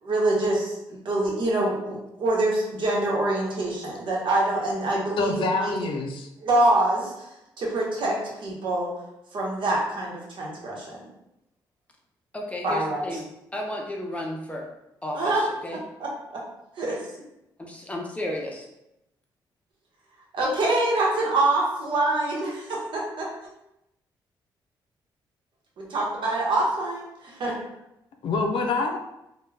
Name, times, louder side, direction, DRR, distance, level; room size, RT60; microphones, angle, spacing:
voice 1, 0.0-5.8 6.4-7.3 7.6-8.9 9.3-11.0 12.6-13.0 15.1-15.4 16.0-16.1 16.8-17.0 20.3-23.3 25.8-27.6, right 2 dB, 65° right, -3 dB, 0.9 m, -25 dB
voice 2, 5.2-6.3 28.2-29.0, left 3 dB, 70° left, 3 dB, 0.4 m, -26 dB
voice 3, 12.3-13.2 13.5-14.7 15.0-15.4 15.6-15.8 17.6-18.7, left 1 dB, 15° left, 0 dB, 0.6 m, -33 dB
2.2 x 2.2 x 3.2 m, 0.87 s
cardioid pair, 75°, 9 cm